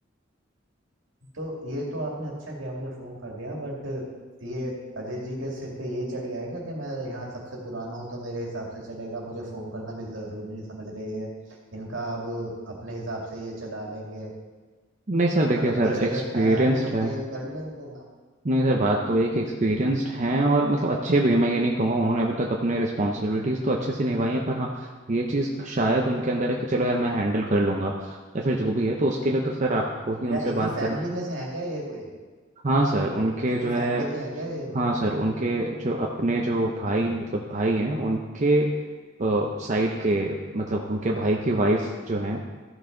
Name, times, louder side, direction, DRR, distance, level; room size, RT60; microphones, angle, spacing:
voice 1, 1.3-4.1 4.4-14.3 15.5-18.1 30.3-32.1 33.5-34.8, right 1 dB, 75° right, -2 dB, 2.3 m, -34 dB
voice 2, 15.1-17.1 18.4-31.0 32.6-34.1 34.7-38.7 39.2-42.4, right 1 dB, 40° right, -1 dB, 0.7 m, -24 dB
14.0 x 6.2 x 3.8 m, 1.3 s
head